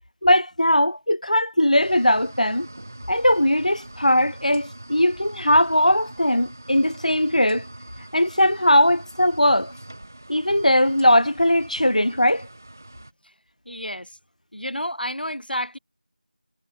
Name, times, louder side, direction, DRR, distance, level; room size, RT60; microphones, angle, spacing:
voice 1, 0.2-2.7 3.1-7.6 8.1-9.7 10.3-12.5, left 1 dB, 50° left, 0.5 m, -19 dB
sound 1, 1.8-13.1, right 1 dB, 15° right, 3.4 m, -43 dB
voice 2, 13.7-14.2 14.5-15.8, equal, 85° left, 2.6 m, -30 dB
figure-of-eight pair, 180°, 5 cm